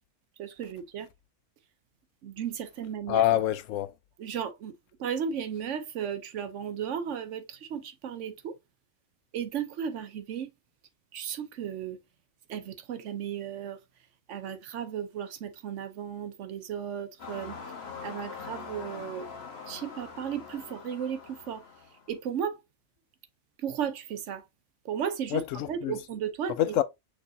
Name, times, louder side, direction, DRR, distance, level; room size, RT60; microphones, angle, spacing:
voice 1, 0.4-1.1 2.2-3.2 4.2-4.7 5.0-8.6 9.3-10.5 11.1-12.0 12.5-13.8 14.3-17.6 18.0-19.3 19.7-21.6 22.1-22.6 23.6-24.5 24.8-26.8, right 8 dB, 75° right, 1.0 m, -35 dB
voice 2, 3.1-3.9 25.3-25.9 26.6-26.8, left 12 dB, 85° left, 1.0 m, -26 dB
sound 1, 17.2-22.1, left 5 dB, 60° left, 1.2 m, -43 dB
6.2 x 3.3 x 2.6 m
omnidirectional pair, 1.3 m